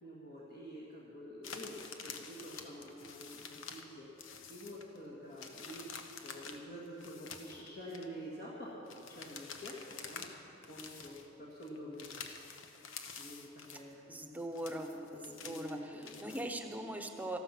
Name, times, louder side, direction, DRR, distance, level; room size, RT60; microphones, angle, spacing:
voice 1, 0.0-10.3 10.7-12.2 13.2-14.0 14.8-16.3, equal, 50° left, -6 dB, 2.0 m, -48 dB
sound 1, 1.4-3.9 4.2-5.0 5.3-8.1 8.9-10.4 10.6-11.3 11.6-13.9 14.3-16.5, left 5 dB, 70° left, 1.0 m, -48 dB
voice 2, 14.1-17.4, right 1 dB, 10° right, 5 dB, 1.0 m, -41 dB
14.0 x 13.0 x 5.9 m, 2.8 s
head